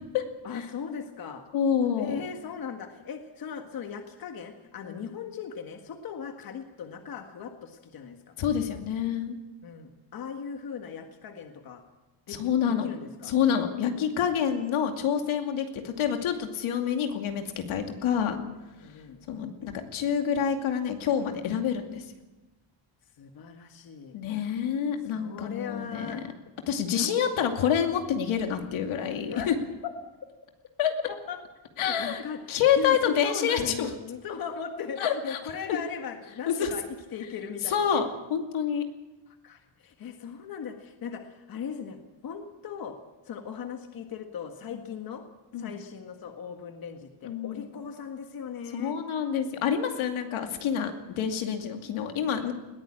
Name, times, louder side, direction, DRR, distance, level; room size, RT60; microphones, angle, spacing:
voice 1, 0.4-1.4 1.9-8.4 9.6-11.8 12.3-13.3 18.8-19.2 23.2-24.1 25.1-26.3 26.9-27.1 29.3-29.5 30.0-30.3 31.1-31.4 31.9-38.0 39.4-43.0 43.2-45.2 45.6-48.9, left 6 dB, 45° left, 5 dB, 1.7 m, -38 dB
voice 2, 1.5-2.2 4.9-5.0 8.4-9.4 12.3-12.9 13.2-18.4 19.3-22.0 24.1-26.2 26.7-29.5 30.8-30.9 31.8-32.2 32.5-33.9 35.0-35.4 35.7-35.8 36.5-36.7 37.6-38.8 45.5-45.7 47.2-47.7 48.7-52.5, left 8 dB, 80° left, 5 dB, 2.6 m, -27 dB
20.5 x 15.5 x 8.7 m, 1.1 s
cardioid pair, 175°, 48 cm